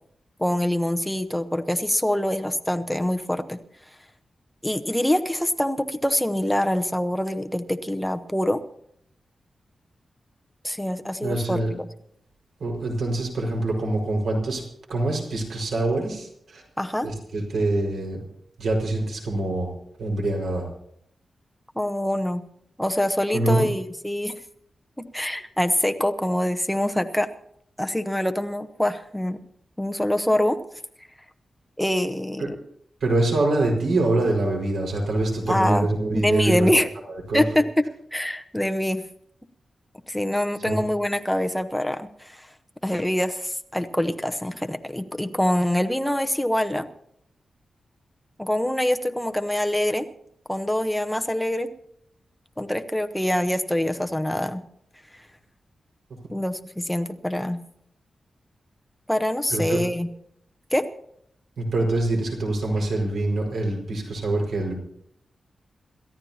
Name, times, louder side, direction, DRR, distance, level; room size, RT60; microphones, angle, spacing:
voice 1, 0.4-3.6 4.6-8.6 10.6-11.9 16.8-17.1 21.7-22.4 22.8-24.4 25.0-27.3 27.8-29.4 29.8-30.6 31.8-32.5 35.5-35.9 36.1-36.9 37.3-37.7 38.1-39.0 40.1-42.5 42.8-46.9 48.4-50.1 50.5-51.7 52.6-54.6 56.3-57.6 59.1-60.1 60.7-60.9, left 1 dB, 5° left, 7 dB, 0.9 m, -25 dB
voice 2, 11.2-11.7 12.6-14.6 14.9-16.6 17.0-18.2 18.6-19.7 20.0-20.7 23.3-23.7 32.4-32.5 33.0-36.7 37.1-37.4 40.6-40.8 59.5-59.8 61.6-64.7, right 2 dB, 80° right, 1 dB, 5.0 m, -24 dB
27.5 x 14.0 x 2.8 m, 0.71 s
wide cardioid pair, 140°, 0 cm